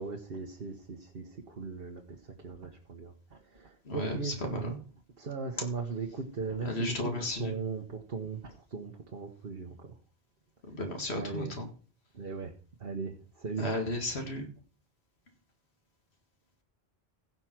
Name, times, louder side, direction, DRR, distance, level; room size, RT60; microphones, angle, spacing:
voice 1, 0.0-2.2 2.4-4.7 5.2-7.1 7.4-8.4 8.7-9.9 11.1-11.5 12.1-12.5 12.8-13.6, right 4 dB, 65° right, 2 dB, 1.4 m, -38 dB
voice 2, 3.8-4.8 6.6-7.6 10.6-11.7 13.6-14.5, left 1 dB, 90° left, 4 dB, 2.2 m, -34 dB
15.5 x 5.4 x 6.0 m, 0.39 s
omnidirectional pair, 1.0 m